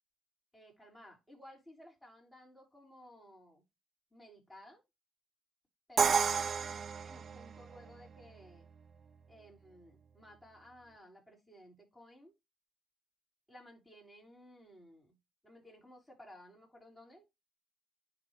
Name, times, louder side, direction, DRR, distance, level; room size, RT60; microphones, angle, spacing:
voice 1, 0.5-3.6 4.1-4.8 5.9-8.7 9.3-12.3 13.5-15.1 15.4-17.2, equal, 10° left, 5.0 m, -57 dB
Crash cymbal, 6.0-7.9, right 6 dB, 50° right, 0.5 m, -31 dB
10.5 x 3.7 x 3.3 m
cardioid pair, 90°, 0 cm